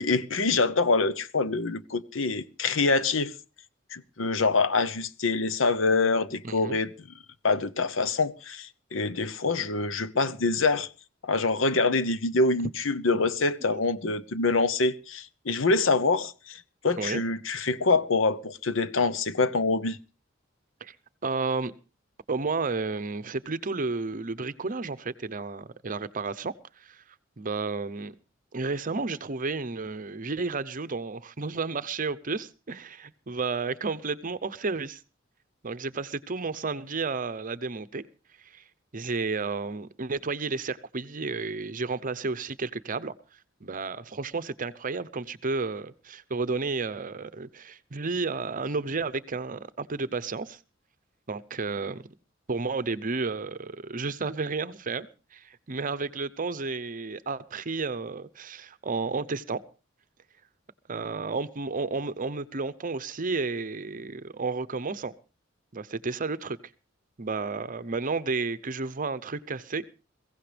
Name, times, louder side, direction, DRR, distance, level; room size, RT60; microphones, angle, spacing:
voice 1, 0.0-3.3 3.9-6.9 7.4-10.9 11.2-20.0, left 3 dB, 75° left, 0.8 m, -25 dB
voice 2, 6.4-6.8 17.0-17.2 20.8-21.0 21.2-21.7 22.3-27.0 27.4-28.1 28.5-35.0 35.6-38.0 38.5-38.6 38.9-43.1 43.6-50.6 51.3-52.1 52.5-59.6 60.9-65.1 65.7-66.6 67.2-69.9, right 4 dB, 45° right, 0.8 m, -32 dB
22.0 x 16.0 x 3.4 m
head